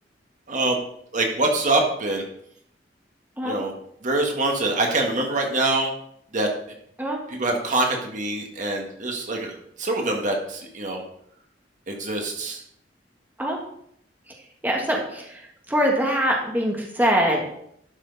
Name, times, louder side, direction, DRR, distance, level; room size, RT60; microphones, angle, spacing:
voice 1, 0.5-0.8 1.1-2.2 3.4-3.7 4.0-5.9 6.3-6.5 7.3-11.0 11.9-12.6, right 2 dB, 45° right, 2 dB, 1.6 m, -24 dB
voice 2, 14.6-15.3 15.7-17.6, equal, 10° right, -1 dB, 1.5 m, -23 dB
11.5 x 6.3 x 4.0 m, 0.70 s
head